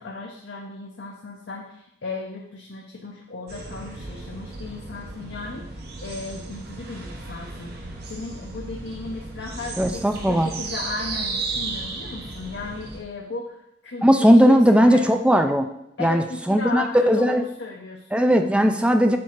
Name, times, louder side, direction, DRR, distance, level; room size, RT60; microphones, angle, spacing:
voice 1, 0.0-7.8 8.1-15.0 16.0-18.2, left 3 dB, 65° left, -1 dB, 0.8 m, -35 dB
sound 1, 3.5-13.0, right 3 dB, 55° right, 1.0 m, -35 dB
voice 2, 9.8-10.5 14.0-15.7 16.0-17.4 18.1-19.2, equal, 5° right, 6 dB, 0.4 m, -18 dB
7.6 x 2.8 x 5.8 m, 0.81 s
head